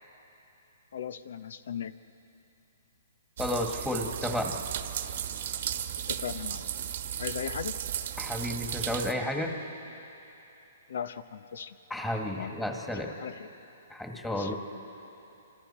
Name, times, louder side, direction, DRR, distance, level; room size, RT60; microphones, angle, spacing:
voice 1, 0.9-1.9 6.1-6.7 7.2-7.9 10.9-11.8 12.3-12.6 13.2-13.5 14.3-14.5, left 8 dB, 75° left, 12 dB, 1.0 m, -37 dB
voice 2, 3.4-4.6 8.2-9.5 11.9-13.1 13.9-14.5, left 1 dB, 5° left, 1 dB, 1.9 m, -32 dB
sound 1, 3.4-9.1, right 10 dB, 60° right, 1.3 m, -35 dB
29.5 x 26.0 x 4.4 m, 3.0 s
hypercardioid pair, 155°, 0 cm